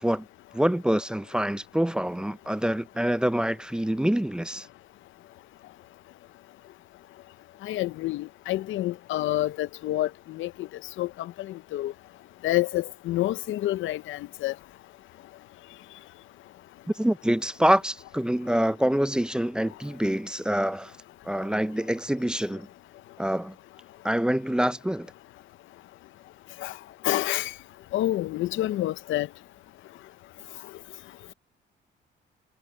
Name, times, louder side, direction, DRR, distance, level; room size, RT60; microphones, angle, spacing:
voice 1, 0.5-4.7 17.0-20.9 21.2-22.7 23.2-23.5 24.0-25.1, equal, 5° right, 0.4 m, -26 dB
voice 2, 7.6-10.7 11.0-11.9 12.4-14.5 26.6-26.7 27.0-27.5 27.9-29.3, left 15 dB, 80° left, 0.6 m, -28 dB
cardioid pair, 90°, 20 cm